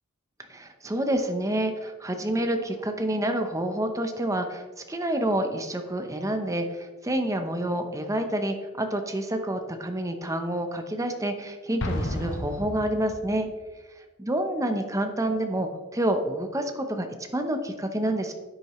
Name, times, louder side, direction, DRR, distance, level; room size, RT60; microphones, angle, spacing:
voice 1, 0.5-13.5 14.2-18.3, right 1 dB, 15° right, 6 dB, 0.8 m, -28 dB
Explosion, 11.8-13.5, left 1 dB, 60° left, 1.3 m, -32 dB
10.5 x 8.6 x 3.1 m, 1.3 s
head